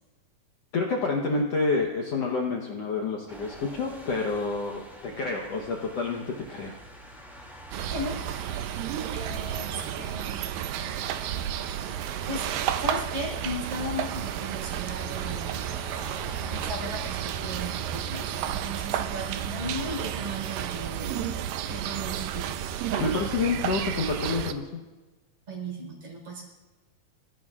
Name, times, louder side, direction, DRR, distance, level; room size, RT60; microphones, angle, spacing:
voice 1, 0.7-6.8 23.0-24.8, left 3 dB, 80° left, 0 dB, 1.4 m, -28 dB
sound 1, 3.3-16.8, right 1 dB, ahead, 1.3 m, -47 dB
sound 2, 7.7-24.5, right 10 dB, 80° right, 2.2 m, -32 dB
voice 2, 9.1-10.4 12.3-12.5 12.8-15.6 16.5-21.2 21.7-22.4 22.9-23.0 25.5-26.4, equal, 40° right, 0 dB, 5.1 m, -36 dB
25.0 x 15.0 x 2.4 m, 1.2 s
omnidirectional pair, 4.4 m